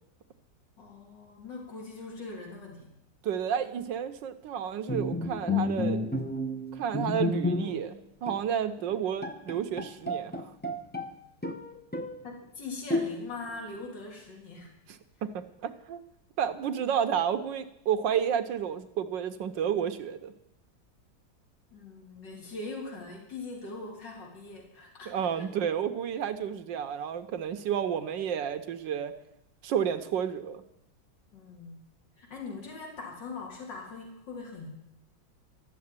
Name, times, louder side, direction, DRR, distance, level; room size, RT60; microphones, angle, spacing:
voice 1, 0.8-2.9 12.2-14.7 21.7-25.5 31.3-31.9 32.2-34.7, left 3 dB, 75° left, -1 dB, 3.2 m, -41 dB
voice 2, 3.2-6.1 6.7-10.5 11.4-11.5 14.9-16.0 16.4-20.3 25.1-29.1 29.6-30.6, right 8 dB, 80° right, 10 dB, 1.6 m, -31 dB
Bowed string instrument, 4.9-7.9 8.3-8.5 8.9-9.0 9.2-11.1 11.4-12.2 12.9-13.5, left 2 dB, 10° left, 0.6 m, -31 dB
13.5 x 7.5 x 9.6 m, 0.82 s
omnidirectional pair, 2.0 m